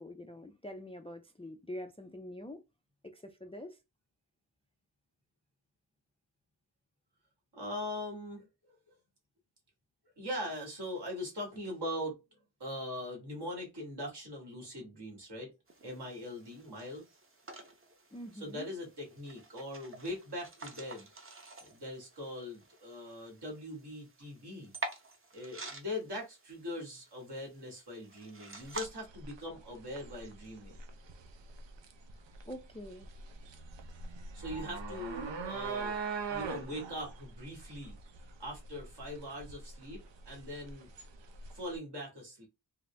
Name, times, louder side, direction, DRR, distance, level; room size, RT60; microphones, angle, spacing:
voice 1, 0.0-2.6 3.0-3.8 18.1-18.7 32.5-33.1, left 1 dB, 15° left, 0.3 m, -45 dB
voice 2, 7.5-8.4 10.2-12.2 12.6-15.5 15.8-17.1 18.3-21.1 21.6-24.7 25.3-30.8 34.3-36.0 36.3-38.0 38.4-40.9 41.5-42.5, left 1 dB, 65° right, 1.7 m, -41 dB
sound 1, 15.7-28.9, right 2 dB, 30° right, 0.7 m, -48 dB
sound 2, 28.6-41.8, right 5 dB, 80° right, 0.7 m, -43 dB
3.8 x 2.0 x 3.2 m
wide cardioid pair, 125°, 43 cm